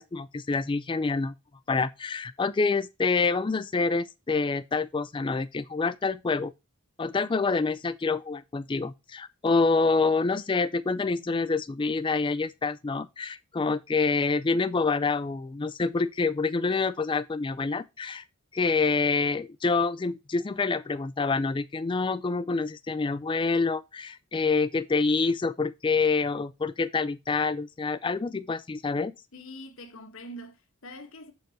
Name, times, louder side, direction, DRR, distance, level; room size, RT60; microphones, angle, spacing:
voice 1, 0.0-1.3 1.7-6.5 7.0-18.2 18.5-29.1, left 4 dB, 20° left, 0.3 m, -27 dB
voice 2, 29.3-31.3, equal, 65° left, 1.2 m, -44 dB
6.7 x 4.1 x 6.2 m
head